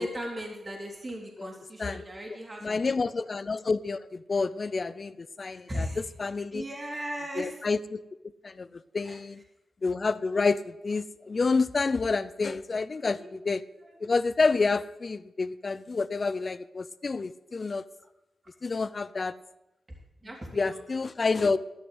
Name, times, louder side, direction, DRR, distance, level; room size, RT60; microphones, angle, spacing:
voice 1, 0.0-2.8 5.5-6.0 6.5-7.6 9.0-9.2 13.1-13.3 13.8-14.0 20.2-20.8, equal, 30° right, -1 dB, 2.9 m, -37 dB
voice 2, 2.6-6.6 7.4-8.0 8.4-8.7 8.9-9.4 9.8-13.6 14.0-17.8 18.6-19.3 20.5-21.6, left 4 dB, 45° left, 15 dB, 0.5 m, -28 dB
13.0 x 6.3 x 7.9 m, 0.93 s
cardioid pair, 65°, 0 cm